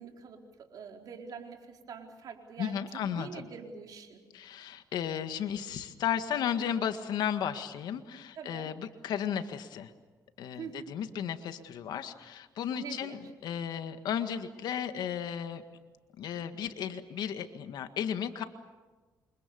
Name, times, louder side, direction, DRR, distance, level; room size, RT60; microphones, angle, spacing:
voice 1, 0.0-4.2 8.4-8.7 10.6-11.0 12.7-13.2, right 6 dB, 60° right, 2 dB, 4.4 m, -45 dB
voice 2, 2.6-3.5 4.3-9.9 10.4-15.6 16.2-18.4, left 9 dB, 70° left, 9 dB, 1.8 m, -34 dB
28.0 x 25.5 x 7.0 m, 1.3 s
cardioid pair, 100°, 7 cm